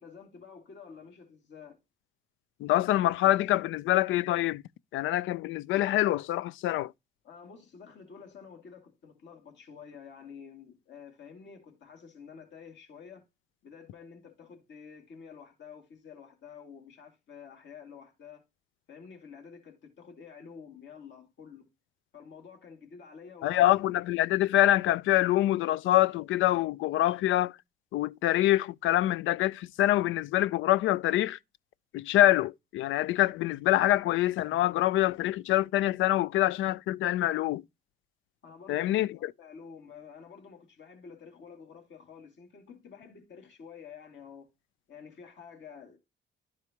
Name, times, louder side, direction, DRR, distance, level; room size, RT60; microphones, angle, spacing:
voice 1, 0.0-1.8 7.2-13.2 13.6-18.4 18.9-21.7 22.1-23.7 38.4-44.5 44.9-46.0, left 6 dB, 65° left, 2.3 m, -49 dB
voice 2, 2.6-4.6 4.9-6.9 23.4-27.5 27.9-31.4 31.9-37.6 38.7-39.1, left 14 dB, 80° left, 0.4 m, -25 dB
12.0 x 4.7 x 2.9 m
cardioid pair, 90°, 20 cm